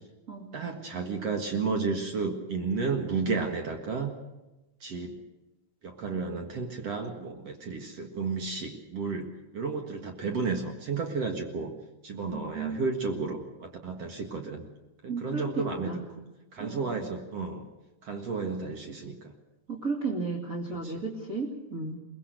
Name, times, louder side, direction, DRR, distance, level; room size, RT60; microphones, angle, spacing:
voice 1, 0.5-4.1 4.8-5.2 5.8-11.7 12.0-14.7 15.0-16.0 16.5-17.7 18.0-19.3 20.8-21.0, right 4 dB, 55° right, 3 dB, 2.6 m, -32 dB
voice 2, 12.3-12.8 15.1-16.1 16.6-17.1 19.7-22.0, right 3 dB, 30° right, -3 dB, 2.5 m, -34 dB
22.5 x 21.0 x 6.6 m, 1.1 s
omnidirectional pair, 3.6 m